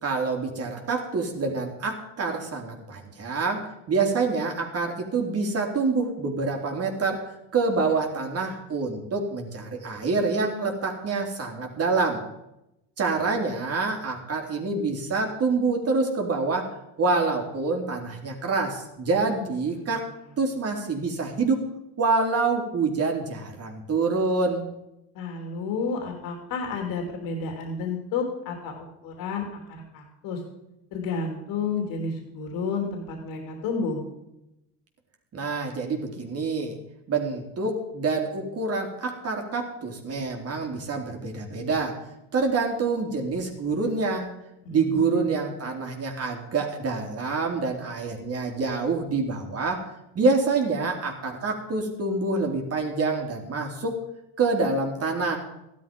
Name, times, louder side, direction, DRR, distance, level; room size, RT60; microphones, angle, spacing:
voice 1, 0.0-7.3 7.5-12.2 13.0-16.7 17.0-20.0 20.4-21.6 22.0-24.7 35.3-36.7 37.1-42.0 42.3-44.3 44.7-49.8 50.2-54.0 54.4-55.4, right 4 dB, 40° right, 2 dB, 3.6 m, -26 dB
voice 2, 25.1-30.4 30.9-34.0 44.6-45.3, left 4 dB, 65° left, 3 dB, 3.3 m, -31 dB
14.5 x 12.0 x 5.4 m, 0.89 s
supercardioid pair, 85°, 36 cm